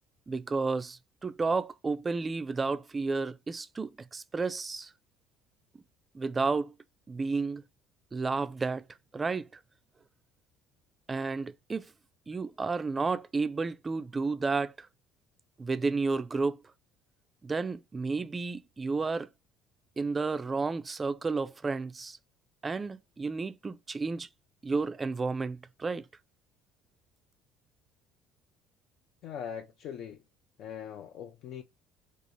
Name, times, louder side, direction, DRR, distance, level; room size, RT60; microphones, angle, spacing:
voice 1, 0.3-4.9 6.1-6.7 7.1-7.6 8.1-8.8 9.1-9.5 11.1-11.9 12.3-14.9 15.6-16.6 17.4-19.3 20.0-22.2 22.6-24.3 24.6-26.1, right 4 dB, 20° right, 0.3 m, -31 dB
voice 2, 29.2-30.2 30.6-31.6, left 8 dB, 60° left, 0.4 m, -41 dB
3.8 x 2.4 x 3.0 m
cardioid pair, 130°, 0 cm